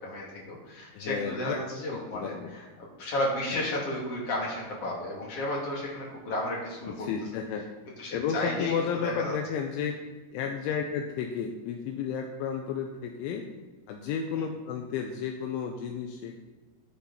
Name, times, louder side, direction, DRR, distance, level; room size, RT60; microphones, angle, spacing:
voice 1, 0.0-7.1 8.0-9.3 14.3-14.5, left 1 dB, 40° left, -4 dB, 2.5 m, -33 dB
voice 2, 0.9-1.6 1.9-2.5 3.5-3.6 7.0-7.7 8.1-10.0 10.3-13.5 13.9-16.4, left 7 dB, 80° left, 3 dB, 3.0 m, -32 dB
11.5 x 9.8 x 4.2 m, 1.3 s
omnidirectional pair, 5.9 m